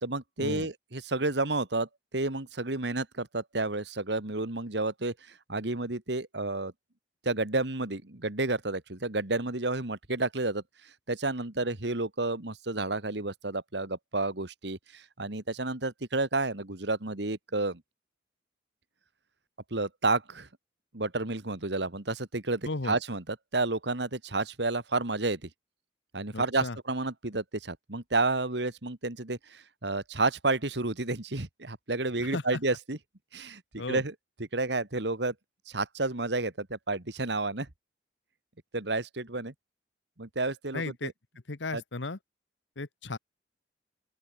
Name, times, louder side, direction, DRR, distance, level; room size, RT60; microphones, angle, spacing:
voice 1, 0.0-5.1 5.5-6.7 7.2-10.6 11.1-17.8 19.7-20.5 20.9-25.5 26.1-33.0 33.3-34.1 34.5-35.3 35.7-37.7 38.7-39.5 40.2-41.1 41.7-41.8, right 2 dB, 70° right, 2.1 m, -31 dB
voice 2, 26.3-26.8 32.3-32.4 33.8-34.0 40.7-41.1 41.5-42.2 42.8-43.2, left 3 dB, 80° left, 1.2 m, -35 dB
open air
head